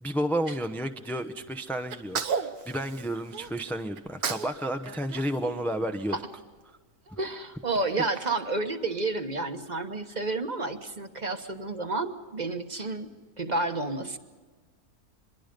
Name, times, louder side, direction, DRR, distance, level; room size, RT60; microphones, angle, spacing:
voice 1, 0.0-6.2 8.1-8.2, right 1 dB, ahead, 6 dB, 0.5 m, -31 dB
Sneeze, 1.9-3.5 4.0-4.6 4.8-6.3, right 6 dB, 85° right, 1.7 m, -34 dB
voice 2, 7.1-13.1 13.4-14.2, right 2 dB, 30° right, 7 dB, 1.1 m, -30 dB
24.5 x 22.5 x 5.3 m, 1.4 s
omnidirectional pair, 1.6 m